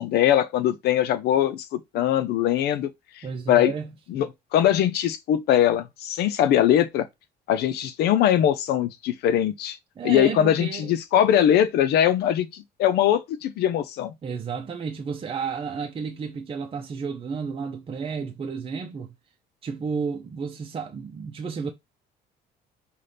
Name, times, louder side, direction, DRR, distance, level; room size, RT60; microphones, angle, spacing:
voice 1, 0.0-2.9 3.2-3.7 4.1-7.1 7.5-9.8 10.0-14.1, left 11 dB, 75° left, 0.7 m, -21 dB
voice 2, 3.2-3.9 10.0-10.9 14.2-19.1 19.6-21.7, right 5 dB, 30° right, 0.7 m, -32 dB
5.6 x 2.5 x 3.4 m
cardioid pair, 110°, 17 cm